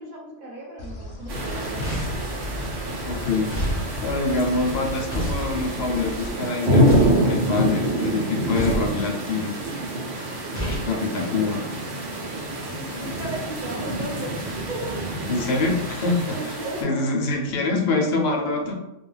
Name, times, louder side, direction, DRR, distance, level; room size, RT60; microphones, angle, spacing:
voice 1, 0.0-2.1 10.9-11.6 12.5-15.2 16.3-17.1, right 1 dB, 40° right, -5 dB, 0.9 m, -35 dB
sound 1, 0.8-6.3, left 1 dB, 90° left, 0.3 m, -36 dB
sound 2, 1.3-16.8, equal, 70° right, 1.0 m, -26 dB
sound 3, 1.8-2.3 3.5-3.8 5.1-5.5 6.9-7.3 8.5-8.9 10.5-10.9, equal, 15° left, 0.5 m, -27 dB
voice 2, 3.0-9.6 10.1-10.3 10.8-11.6 15.3-18.7, left 3 dB, 65° left, 1 dB, 0.7 m, -25 dB
2.3 x 2.2 x 3.2 m, 0.97 s
omnidirectional pair, 1.3 m